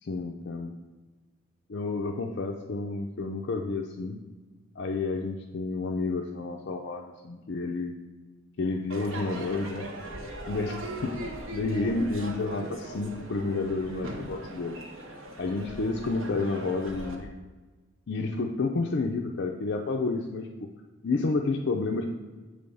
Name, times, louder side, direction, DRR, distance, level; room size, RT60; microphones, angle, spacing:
voice 1, 0.0-0.7 1.7-4.2 4.8-7.9 8.6-9.9 10.5-14.8 15.4-17.4 18.1-20.7 21.0-22.1, left 3 dB, 55° left, 2 dB, 0.4 m, -30 dB
Crowd / Fireworks, 8.9-17.1, right 1 dB, 80° right, 1.0 m, -40 dB
7.6 x 3.4 x 5.3 m, 1.3 s
head